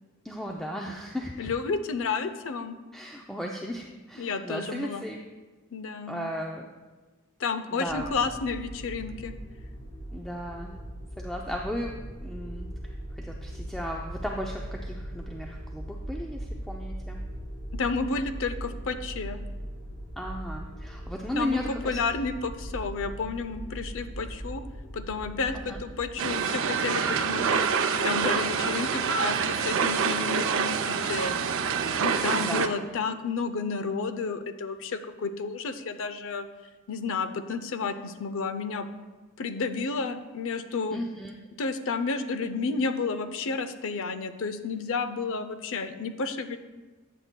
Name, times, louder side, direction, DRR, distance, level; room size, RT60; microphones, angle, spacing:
voice 1, 0.2-1.5 2.9-5.2 6.1-6.7 7.8-8.1 10.1-10.8 11.2-17.2 20.2-22.0 25.6-25.8 32.4-32.7 40.9-41.3, equal, ahead, -1 dB, 0.4 m, -35 dB
voice 2, 1.4-2.8 4.2-5.0 5.7-6.3 7.4-9.3 17.7-19.4 21.4-24.6 24.9-31.5 32.0-36.5 36.9-38.9 39.4-41.0 41.6-46.6, left 4 dB, 65° left, 10 dB, 0.5 m, -31 dB
sound 1, 7.9-26.0, equal, 40° left, 1.3 m, -39 dB
sound 2, 26.2-32.7, right 6 dB, 65° right, 0.5 m, -26 dB
13.0 x 7.5 x 2.2 m, 1.3 s
head